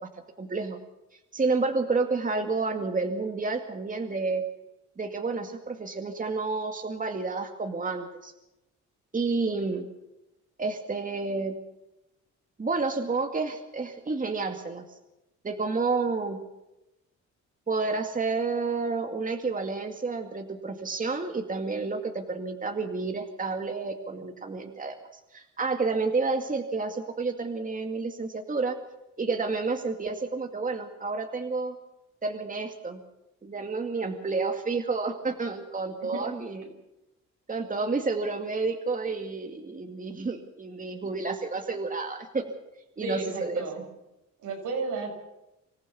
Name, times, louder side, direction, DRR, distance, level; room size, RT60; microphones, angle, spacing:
voice 1, 0.4-0.8 1.3-4.4 5.0-8.3 9.1-9.9 10.6-11.6 12.6-14.8 15.4-16.4 17.7-25.0 25.3-28.8 29.2-31.8 32.2-33.0 33.4-36.7 37.5-42.4 43.0-43.6, right 4 dB, 25° right, 5 dB, 2.2 m, -30 dB
voice 2, 43.0-43.9 44.4-45.1, right 3 dB, 80° right, 2 dB, 6.3 m, -32 dB
26.0 x 15.0 x 7.1 m, 0.94 s
cardioid pair, 90°, 30 cm